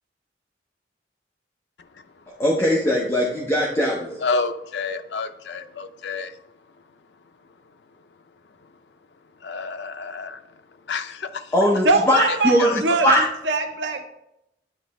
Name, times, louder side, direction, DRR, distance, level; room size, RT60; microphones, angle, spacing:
voice 1, 2.4-4.2 11.5-13.2, equal, 15° left, -4 dB, 0.8 m, -20 dB
voice 2, 4.2-6.3 9.4-10.4 10.9-11.5 12.6-12.8, left 4 dB, 70° left, 8 dB, 0.5 m, -29 dB
voice 3, 11.8-14.0, right 3 dB, 80° right, 5 dB, 0.8 m, -22 dB
9.5 x 3.3 x 4.1 m, 0.82 s
head